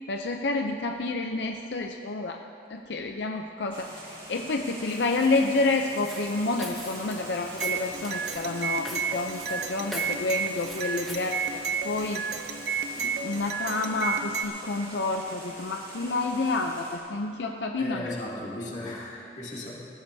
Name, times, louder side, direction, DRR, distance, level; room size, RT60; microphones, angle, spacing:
voice 1, 0.1-2.4 2.7-12.2 13.0-18.1, left 3 dB, 80° left, 3 dB, 0.6 m, -29 dB
sound 1, 3.7-17.0, right 1 dB, 30° right, 3.3 m, -43 dB
Walk footsteps, 4.9-13.2, equal, ahead, 1.3 m, -45 dB
sound 2, 7.6-14.4, right 6 dB, 70° right, 0.7 m, -32 dB
voice 2, 17.8-19.7, left 1 dB, 40° left, -5 dB, 2.4 m, -36 dB
20.5 x 15.0 x 2.8 m, 2.7 s
head